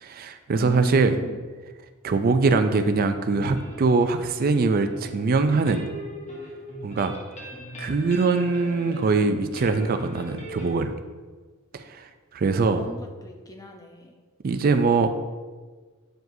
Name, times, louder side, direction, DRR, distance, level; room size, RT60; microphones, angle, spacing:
voice 1, 0.0-1.1 2.0-5.8 6.8-7.1 7.8-10.9 12.3-12.8 14.4-15.1, right 4 dB, 45° right, 8 dB, 0.4 m, -22 dB
voice 2, 0.5-1.4 12.6-14.1, left 1 dB, 15° left, 3 dB, 0.5 m, -37 dB
sound 1, 3.2-10.7, equal, 30° left, 1.1 m, -40 dB
7.6 x 4.7 x 2.6 m, 1.4 s
head